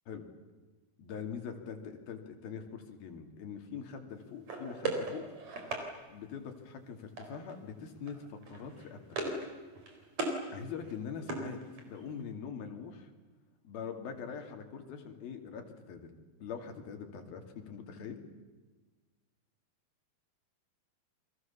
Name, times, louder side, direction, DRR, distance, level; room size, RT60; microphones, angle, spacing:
voice 1, 1.0-5.2 6.1-9.0 9.3-9.4 10.5-11.6 11.9-13.1 13.6-16.1 16.4-18.2, left 6 dB, 70° left, 5 dB, 4.4 m, -43 dB
sound 1, 4.5-5.9 7.2-7.6 7.9-8.1 8.4-9.5 9.8-10.4 10.8-12.0, right 3 dB, 45° right, 5.2 m, -38 dB
29.5 x 24.0 x 7.2 m, 1.3 s
omnidirectional pair, 4.4 m